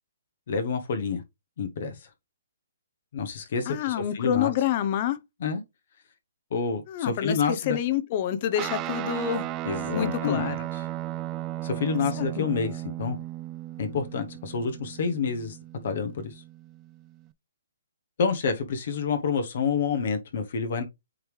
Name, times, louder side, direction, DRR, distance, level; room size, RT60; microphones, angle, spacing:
voice 1, 0.5-1.2 1.6-2.1 3.1-4.5 5.4-5.6 6.5-7.8 9.6-10.5 11.6-13.2 13.8-15.6 15.8-16.4 18.2-20.8, left 5 dB, 60° left, 1.1 m, -28 dB
voice 2, 3.7-5.2 6.9-9.5 9.9-10.7 12.2-12.5, left 10 dB, 40° left, 0.8 m, -28 dB
Guitar, 8.6-17.3, right 14 dB, 25° right, 0.4 m, -35 dB
8.7 x 3.2 x 3.4 m
hypercardioid pair, 150°, 0 cm